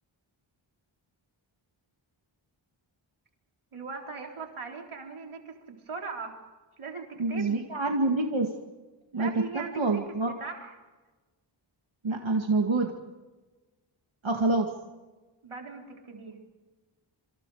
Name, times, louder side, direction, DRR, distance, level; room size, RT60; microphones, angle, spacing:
voice 1, 3.7-5.6 5.9-6.4 6.8-7.6 9.1-10.0 10.4-10.7 15.4-16.4, right 5 dB, 90° right, 1 dB, 4.1 m, -39 dB
voice 2, 7.2-8.5 9.1-9.3 9.5-10.3 12.0-12.9 14.2-14.7, right 3 dB, 70° right, 2 dB, 2.1 m, -26 dB
27.0 x 26.5 x 5.0 m, 1.2 s
wide cardioid pair, 80°, 48 cm